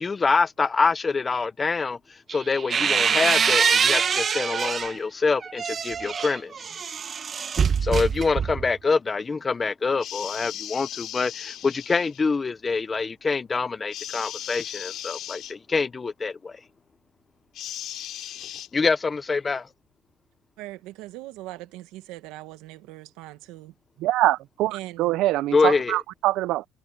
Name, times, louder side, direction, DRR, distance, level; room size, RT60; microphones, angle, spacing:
voice 1, 0.0-2.0 2.3-6.5 7.8-16.6 18.7-19.7 25.5-26.0, left 4 dB, 20° left, 0.8 m, -25 dB
sound 1, 2.3-5.0 5.4-8.8, right 6 dB, 30° right, 1.3 m, -24 dB
sound 2, 10.0-12.2 13.9-15.5 17.5-18.7, left 12 dB, 55° left, 2.8 m, -37 dB
voice 2, 20.6-23.7 24.7-25.2, right 17 dB, 85° right, 1.7 m, -40 dB
voice 3, 24.0-26.7, right 16 dB, 70° right, 0.6 m, -24 dB
cardioid pair, 145°, 0 cm